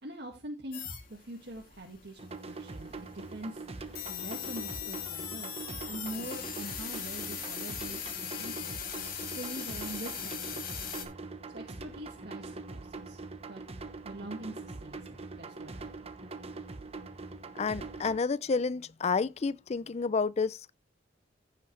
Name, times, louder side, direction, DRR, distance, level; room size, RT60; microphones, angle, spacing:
voice 1, 0.0-3.6 4.1-8.8 9.4-10.8 11.5-13.2 13.5-13.6 14.0-16.1, right 1 dB, 60° right, 2.0 m, -44 dB
sound 1, 0.7-11.1, left 8 dB, 50° left, 2.1 m, -40 dB
sound 2, 2.2-18.2, right 3 dB, 35° right, 1.0 m, -43 dB
voice 2, 17.6-20.7, left 4 dB, 35° left, 0.4 m, -30 dB
15.0 x 5.7 x 3.2 m
head